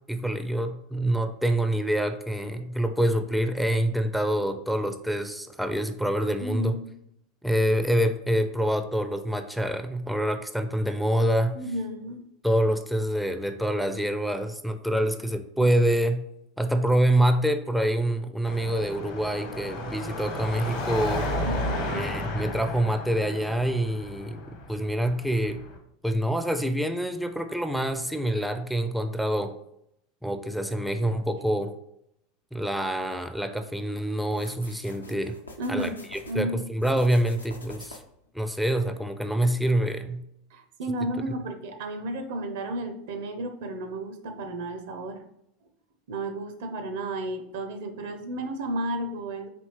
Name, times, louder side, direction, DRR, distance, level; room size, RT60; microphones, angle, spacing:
voice 1, 0.1-6.8 7.4-11.6 12.4-16.2 16.6-21.3 21.9-24.4 24.7-25.6 26.0-29.5 30.2-31.7 32.5-35.4 35.7-38.0 38.3-40.2, right 1 dB, ahead, 7 dB, 0.4 m, -26 dB
voice 2, 6.4-6.9 11.5-12.2 21.4-22.1 35.6-36.7 40.5-45.2 46.1-49.5, right 1 dB, 65° right, 7 dB, 0.6 m, -33 dB
Car passing by / Traffic noise roadway noise / Engine, 18.4-25.8, left 1 dB, 60° left, 0.9 m, -33 dB
sound 1, 34.3-36.4 36.8-38.2, left 2 dB, 90° left, 0.5 m, -47 dB
4.3 x 2.8 x 3.2 m, 0.76 s
figure-of-eight pair, 80°, 0 cm